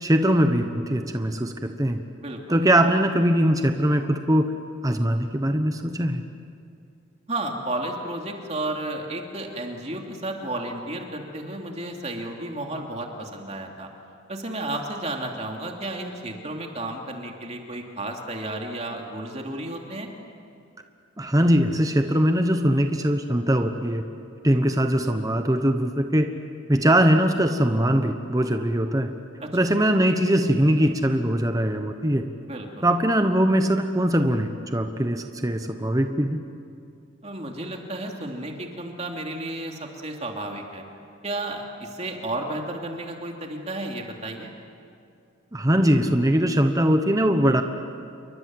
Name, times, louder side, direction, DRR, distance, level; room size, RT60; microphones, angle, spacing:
voice 1, 0.0-2.0 2.5-4.5 4.8-6.2 21.2-24.0 24.4-26.3 26.7-29.1 29.5-32.2 32.8-36.4 45.5-47.6, equal, 15° right, 6 dB, 1.1 m, -21 dB
voice 2, 2.2-2.6 7.3-13.9 14.3-20.1 29.4-29.7 32.4-32.9 37.2-40.8 41.2-44.5, right 1 dB, 35° right, 1 dB, 2.9 m, -32 dB
29.0 x 23.5 x 7.9 m, 2.4 s
head